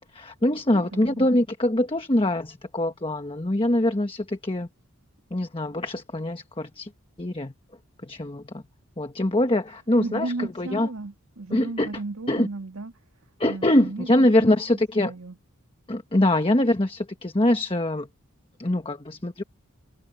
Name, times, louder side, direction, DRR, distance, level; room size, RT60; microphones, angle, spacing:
voice 1, 0.1-4.7 5.3-6.9 7.2-7.5 8.0-8.6 9.0-10.9 11.5-11.9 12.3-12.5 13.4-15.1 15.9-18.1 18.6-19.4, left 1 dB, 25° left, 1.2 m, -23 dB
voice 2, 0.7-1.3 10.0-12.9 13.5-14.5 15.0-15.4, right 2 dB, 75° right, 2.1 m, -35 dB
head